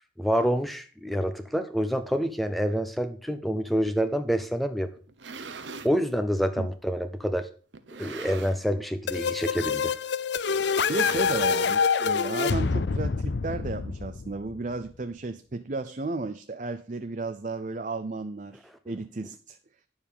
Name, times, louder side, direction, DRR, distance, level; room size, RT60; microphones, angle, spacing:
voice 1, 0.2-4.9 5.8-7.5 8.0-9.9, equal, ahead, 9 dB, 0.6 m, -27 dB
sound 1, 5.0-6.0 6.7-6.8 7.7-8.8 9.1-9.4 9.6-9.7 10.6-11.7, right 4 dB, 85° right, 1.0 m, -42 dB
sound 2, 9.1-14.7, left 5 dB, 70° left, 0.6 m, -26 dB
voice 2, 10.9-19.6, right 3 dB, 45° right, 9 dB, 0.6 m, -34 dB
10.5 x 7.1 x 5.5 m, 0.41 s
head